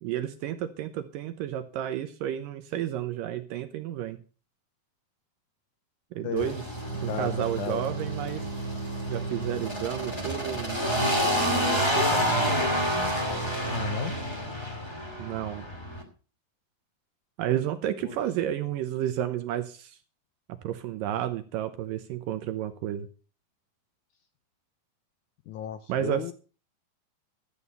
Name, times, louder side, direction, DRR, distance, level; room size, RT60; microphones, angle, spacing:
voice 1, 0.0-4.2 6.1-6.7 7.0-8.6 9.1-12.6 15.2-15.7 17.4-20.0 20.5-23.1 25.9-26.3, right 11 dB, 80° right, 9 dB, 2.2 m, -32 dB
voice 2, 6.2-6.5 7.1-7.9 13.7-14.2 18.0-18.2 25.5-26.3, left 10 dB, 90° left, 10 dB, 1.7 m, -34 dB
sound 1, 6.4-16.0, equal, 10° left, 1.3 m, -29 dB
13.0 x 8.4 x 5.5 m, 0.37 s
omnidirectional pair, 4.4 m